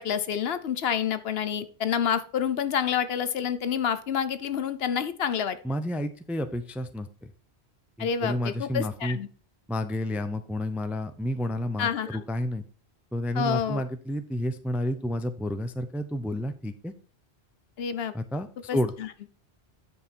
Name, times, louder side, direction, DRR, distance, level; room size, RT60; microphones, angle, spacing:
voice 1, 0.0-5.6 8.0-9.3 11.8-12.2 13.3-13.8 17.8-18.1 18.7-19.1, left 8 dB, 70° left, 12 dB, 0.9 m, -28 dB
voice 2, 5.6-7.1 8.0-9.2 9.7-12.6 13.1-16.9 18.1-18.9, left 1 dB, ahead, 10 dB, 0.4 m, -30 dB
9.8 x 5.5 x 4.5 m, 0.43 s
omnidirectional pair, 1.1 m